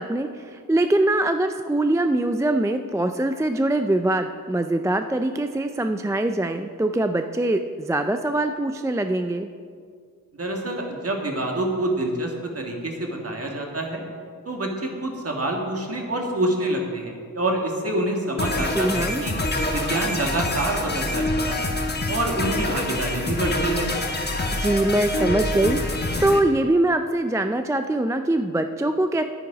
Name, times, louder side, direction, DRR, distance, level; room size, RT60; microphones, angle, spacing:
voice 1, 0.0-9.5 18.7-19.2 24.5-29.2, right 1 dB, 10° right, 7 dB, 0.3 m, -23 dB
voice 2, 10.4-14.0 14.5-19.3 19.7-21.7 22.1-23.9, right 1 dB, 40° right, 1 dB, 1.8 m, -27 dB
sound 1, 18.4-26.4, left 2 dB, 30° left, 1.2 m, -26 dB
10.5 x 9.4 x 5.0 m, 2.1 s
wide cardioid pair, 100°, 36 cm